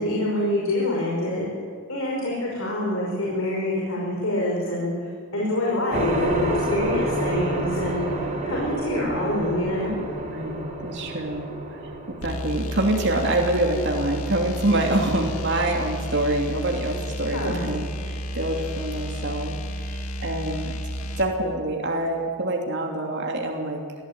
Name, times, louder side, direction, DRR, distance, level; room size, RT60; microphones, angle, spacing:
voice 1, 0.0-1.4 1.9-9.9 17.3-17.7, left 1 dB, 75° left, -3 dB, 5.6 m, -26 dB
sound 1, 5.9-16.0, right 1 dB, 30° right, 4.7 m, -29 dB
voice 2, 10.2-11.6 12.2-19.5 19.8-20.7 21.2-24.0, right 1 dB, 55° right, 1 dB, 2.9 m, -26 dB
sound 2, 12.2-21.3, equal, 90° left, 2.2 m, -32 dB
23.5 x 16.0 x 8.9 m, 2.1 s
head